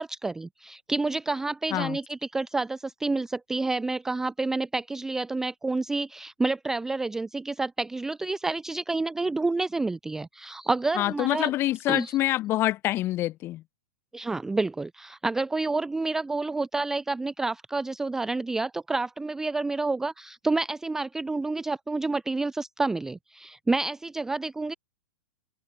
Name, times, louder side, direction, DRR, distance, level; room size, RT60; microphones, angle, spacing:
voice 1, 0.0-11.5 11.9-12.2 14.1-24.7, right 3 dB, 5° right, 0.4 m, -29 dB
voice 2, 11.0-13.6, left 15 dB, 30° left, 1.6 m, -26 dB
open air
hypercardioid pair, 145°, 8 cm